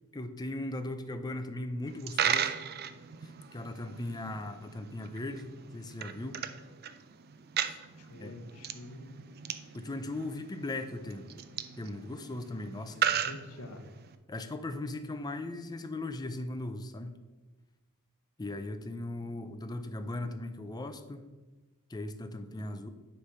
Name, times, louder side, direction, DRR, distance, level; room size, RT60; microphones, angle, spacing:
voice 1, 0.1-2.6 3.2-6.4 7.6-7.8 8.2-8.3 9.7-11.2 11.8-13.2 14.3-17.2 18.4-21.3 21.9-22.9, left 2 dB, 20° left, 9 dB, 0.5 m, -38 dB
Coin (dropping), 1.9-14.2, right 8 dB, 45° right, 0.4 m, -37 dB
voice 2, 8.0-9.1 12.9-13.8, left 2 dB, 75° left, 5 dB, 0.9 m, -47 dB
9.6 x 3.3 x 5.5 m, 1.2 s
head